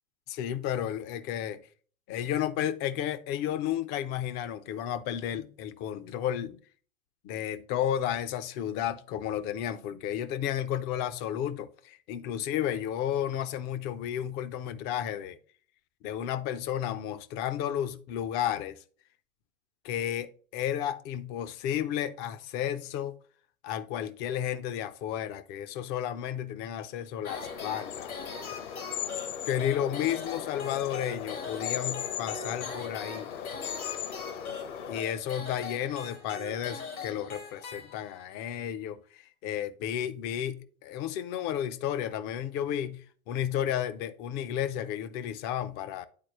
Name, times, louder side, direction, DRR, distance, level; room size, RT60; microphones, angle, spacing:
voice 1, 0.3-1.6 2.1-6.6 7.2-15.4 16.0-18.7 19.8-23.1 23.6-28.1 29.5-33.3 34.9-46.1, left 10 dB, 25° left, 0.5 m, -32 dB
sound 1, 27.2-38.4, left 4 dB, 85° left, 2.0 m, -42 dB
sound 2, 27.3-35.0, left 9 dB, 60° left, 1.0 m, -38 dB
10.5 x 4.4 x 3.0 m
figure-of-eight pair, 100°, 42 cm